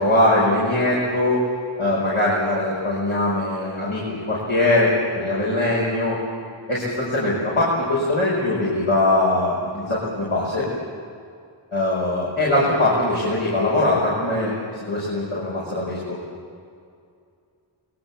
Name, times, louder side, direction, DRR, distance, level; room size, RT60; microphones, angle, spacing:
voice 1, 0.0-1.4 1.8-6.2 6.7-10.7 11.7-14.5 14.8-16.2, left 1 dB, 85° left, -6 dB, 5.9 m, -21 dB
28.0 x 21.5 x 7.4 m, 2.4 s
wide cardioid pair, 40°, 49 cm